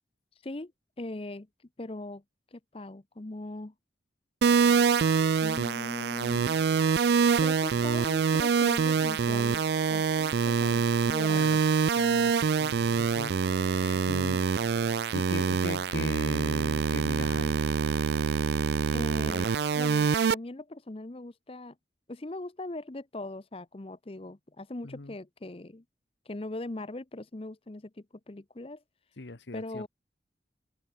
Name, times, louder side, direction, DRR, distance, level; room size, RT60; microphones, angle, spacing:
voice 1, 1.0-1.5 1.8-2.2 2.5-3.7 5.4-6.6 7.4-9.6 9.9-11.6 18.9-21.7 22.1-25.8 26.3-28.8 29.5-29.9, left 2 dB, 30° left, 0.7 m, -40 dB
sound 1, 4.4-20.3, right 6 dB, 70° right, 0.4 m, -25 dB
voice 2, 11.9-14.4 14.7-17.6 24.8-25.2 29.2-29.9, left 2 dB, 85° left, 1.2 m, -39 dB
open air
head